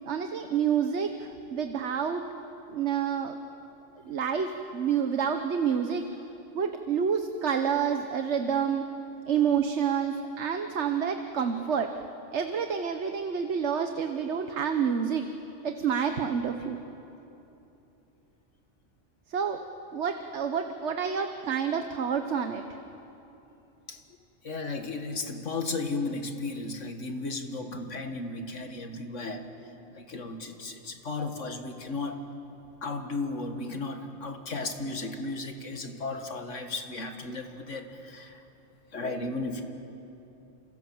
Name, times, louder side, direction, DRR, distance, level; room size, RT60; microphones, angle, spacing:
voice 1, 0.0-2.2 2.7-3.3 4.0-6.1 6.5-8.8 9.3-11.9 12.3-15.2 15.6-16.8 19.3-19.6 19.9-22.6, right 7 dB, 65° right, 6 dB, 1.4 m, -28 dB
voice 2, 24.4-29.4 30.0-32.2 32.8-38.4 38.9-39.6, left 3 dB, 80° left, 5 dB, 2.2 m, -35 dB
29.0 x 27.0 x 7.4 m, 3.0 s
omnidirectional pair, 1.3 m